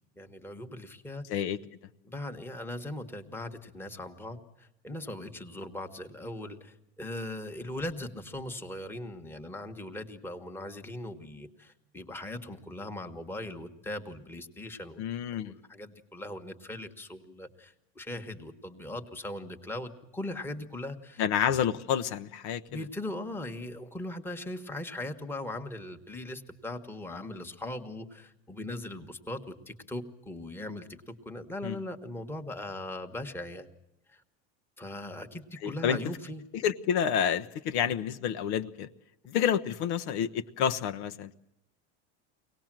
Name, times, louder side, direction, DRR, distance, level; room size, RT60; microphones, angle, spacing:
voice 1, 0.2-1.2 2.0-21.2 22.7-33.7 34.1-34.2 34.8-36.4, left 1 dB, 5° left, 4 dB, 1.5 m, -39 dB
voice 2, 15.0-15.5 21.2-22.6 31.6-31.8 35.6-36.0 36.6-38.9 39.3-41.3, left 8 dB, 65° left, 9 dB, 1.1 m, -29 dB
24.0 x 18.5 x 7.6 m, 0.84 s
supercardioid pair, 140°, 35 cm